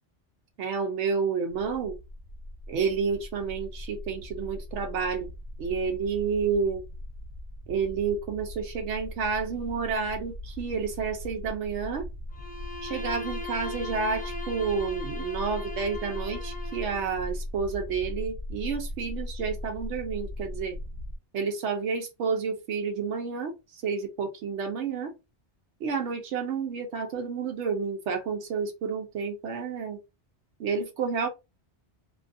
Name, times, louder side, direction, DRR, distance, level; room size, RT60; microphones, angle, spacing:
voice 1, 0.6-2.0 2.7-5.3 5.6-6.8 7.7-12.1 12.8-20.8 21.3-25.1 25.8-30.0 30.6-31.3, right 5 dB, 90° right, 0.9 m, -30 dB
sound 1, 1.5-21.2, left 1 dB, 55° right, 0.6 m, -39 dB
Bowed string instrument, 12.3-17.2, left 2 dB, 10° left, 0.4 m, -39 dB
2.7 x 2.4 x 2.5 m
omnidirectional pair, 1.1 m